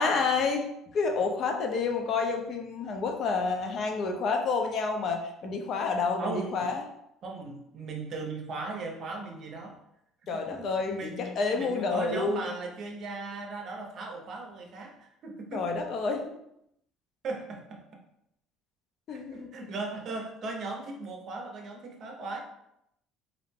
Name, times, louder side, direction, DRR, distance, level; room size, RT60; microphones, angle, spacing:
voice 1, 0.0-6.8 10.3-12.5 15.5-16.3 19.1-19.5, left 4 dB, 50° left, 3 dB, 0.5 m, -29 dB
voice 2, 6.2-6.7 7.2-9.8 10.3-15.7 17.2-17.8 19.3-22.4, right 3 dB, 50° right, 2 dB, 0.6 m, -38 dB
2.5 x 2.1 x 3.2 m, 0.78 s
cardioid pair, 110°, 0 cm